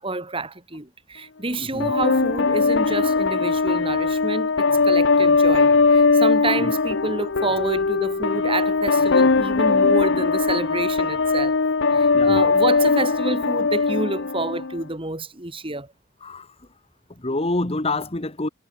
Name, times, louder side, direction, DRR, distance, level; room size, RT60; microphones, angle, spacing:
voice 1, 0.0-11.6 11.9-15.9, right 2 dB, 25° right, 3.2 m, -28 dB
voice 2, 1.6-1.9 6.6-6.7 12.1-12.4 16.2-16.5 17.2-18.5, left 2 dB, 30° left, 1.4 m, -27 dB
sound 1, 1.8-14.8, left 4 dB, 60° left, 0.8 m, -20 dB
head